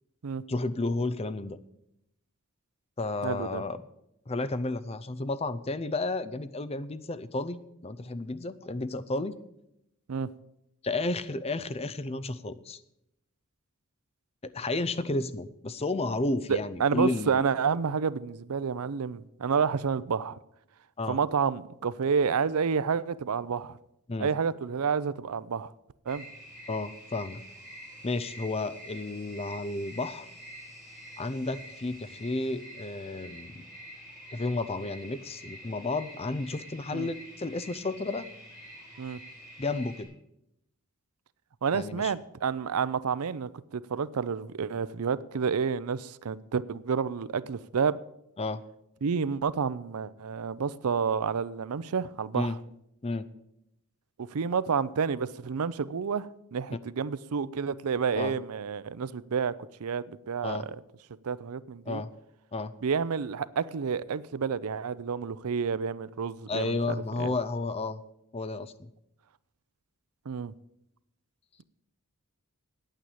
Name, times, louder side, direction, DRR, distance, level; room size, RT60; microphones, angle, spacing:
voice 1, 0.5-1.6 3.0-3.8 4.3-9.4 10.8-12.8 14.4-17.4 21.0-21.2 24.1-24.3 26.7-27.4 28.0-30.3 31.2-33.7 34.3-38.3 39.6-40.1 41.7-42.1 48.4-48.6 52.3-52.6 53.0-53.3 58.1-58.3 60.4-60.7 61.9-62.1 62.5-62.7 66.5-68.0 68.3-68.9, left 2 dB, 25° left, 0.5 m, -32 dB
voice 2, 3.2-3.6 10.1-10.3 16.5-20.4 21.1-23.8 24.2-25.7 26.1-26.2 36.9-37.1 39.0-39.2 41.6-48.0 49.0-52.5 54.2-59.5 59.8-60.8 61.2-62.0 62.8-66.8 67.2-67.3 70.3-70.5, right 6 dB, 80° right, 0.5 m, -29 dB
sound 1, 26.1-40.0, equal, 5° right, 4.8 m, -47 dB
9.3 x 8.9 x 8.4 m
head